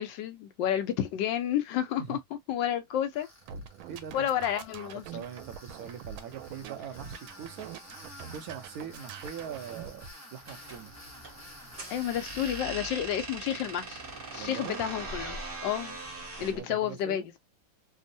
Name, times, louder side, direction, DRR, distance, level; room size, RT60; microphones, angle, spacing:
voice 1, 0.0-2.2 2.5-3.3 4.1-5.2 11.9-14.0 14.3-16.0 16.4-17.4, left 10 dB, 75° left, 1.2 m, -31 dB
Tools, 3.1-12.6, left 1 dB, 20° left, 0.4 m, -50 dB
sound 1, 3.4-10.1, right 8 dB, 90° right, 1.4 m, -45 dB
voice 2, 3.9-4.3 5.1-7.7 8.3-10.0 10.3-10.9 14.4-14.8 16.4-17.3, right 8 dB, 70° right, 0.8 m, -42 dB
sound 2, 10.4-16.6, right 2 dB, 40° right, 0.8 m, -41 dB
3.5 x 2.0 x 2.5 m
omnidirectional pair, 2.2 m